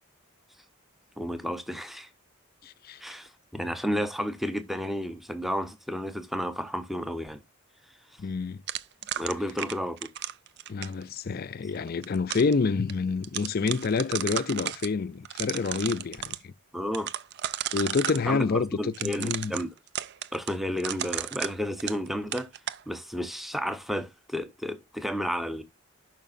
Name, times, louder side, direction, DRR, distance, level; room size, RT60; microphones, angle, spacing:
voice 1, 1.2-2.1 3.0-7.4 9.2-10.0 16.7-17.1 18.2-18.4 18.8-19.7 20.3-22.5 22.9-25.6, equal, ahead, 0.7 m, -32 dB
voice 2, 2.6-3.0 8.2-8.6 10.7-16.5 17.7-19.5, left 4 dB, 40° left, 0.4 m, -28 dB
sound 1, 8.7-11.0 11.8-12.5 12.9-13.0 13.2-14.9 15.2-16.4 16.9-18.2 18.9-22.1 22.3-22.8, right 11 dB, 50° right, 0.4 m, -34 dB
11.0 x 5.8 x 2.5 m
head